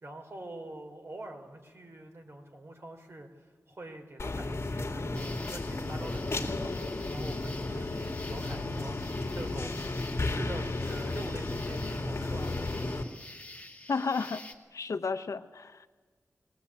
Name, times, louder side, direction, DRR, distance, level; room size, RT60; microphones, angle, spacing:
voice 1, 0.0-9.0 9.3-9.8 10.2-13.1 13.4-13.5, right 2 dB, 50° right, 4 dB, 3.8 m, -45 dB
sound 1, 4.2-13.0, left 2 dB, 50° left, 2.4 m, -33 dB
sound 2, 5.1-14.5, left 2 dB, 25° left, 2.1 m, -48 dB
voice 2, 13.9-14.4 14.7-15.9, left 4 dB, 70° left, 9 dB, 1.0 m, -32 dB
21.5 x 18.5 x 8.6 m, 1.4 s
cardioid pair, 60°, 6 cm